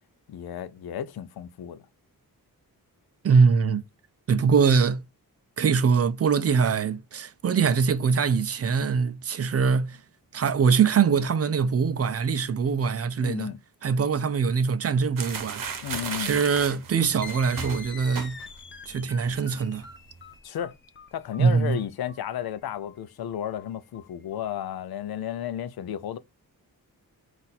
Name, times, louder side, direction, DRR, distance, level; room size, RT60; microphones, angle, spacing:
voice 1, 0.3-1.8 13.2-13.6 15.8-16.3 20.4-20.7 21.1-26.2, left 10 dB, 85° left, 0.5 m, -33 dB
voice 2, 3.2-3.8 4.3-5.0 5.6-10.0 10.3-13.5 13.8-15.6 16.2-18.4 18.9-19.9 21.4-21.8, right 5 dB, 40° right, 0.4 m, -23 dB
sound 1, 15.2-18.7 19.0-19.3 19.6-20.2, right 5 dB, 60° right, 0.9 m, -35 dB
sound 2, 17.2-24.5, left 6 dB, 30° left, 0.5 m, -45 dB
4.0 x 2.5 x 4.0 m
wide cardioid pair, 115°, 37 cm